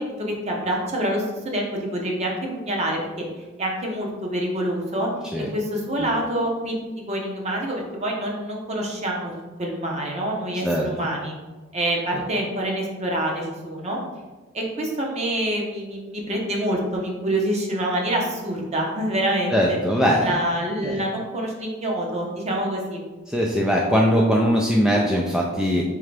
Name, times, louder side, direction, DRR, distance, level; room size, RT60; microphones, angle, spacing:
voice 1, 0.0-3.2 3.6-5.1 5.5-6.7 7.1-11.4 11.7-14.0 14.5-19.8 20.2-23.0, right 1 dB, 35° right, -1 dB, 0.9 m, -26 dB
voice 2, 19.5-20.3 20.8-21.0 23.3-25.8, equal, 5° right, -3 dB, 0.3 m, -20 dB
4.3 x 3.7 x 3.3 m, 1.2 s
head